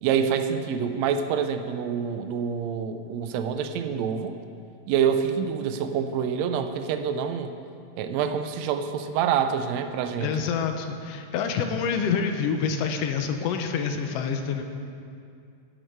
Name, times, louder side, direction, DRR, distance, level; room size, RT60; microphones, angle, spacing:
voice 1, 0.0-4.4 4.9-7.5 8.0-10.5, right 7 dB, 75° right, 8 dB, 1.8 m, -26 dB
voice 2, 10.2-14.6, left 6 dB, 75° left, 6 dB, 1.6 m, -27 dB
11.0 x 9.9 x 4.5 m, 2.5 s
omnidirectional pair, 3.4 m